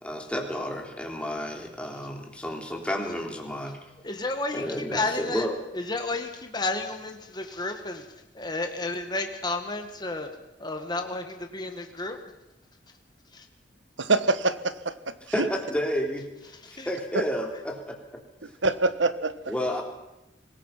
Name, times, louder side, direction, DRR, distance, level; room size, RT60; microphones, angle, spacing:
voice 1, 0.0-3.8 4.5-5.5 15.3-16.3 16.7-18.0 19.5-19.8, equal, 5° left, 1 dB, 3.4 m, -31 dB
voice 2, 4.0-5.5 5.7-8.1 8.3-10.3 10.6-12.2 13.3-13.5 16.5-16.9, left 2 dB, 25° left, 5 dB, 1.9 m, -32 dB
voice 3, 14.0-15.5 17.1-17.2 18.6-19.3, right 3 dB, 80° right, 12 dB, 1.4 m, -25 dB
25.0 x 20.5 x 5.9 m, 0.93 s
head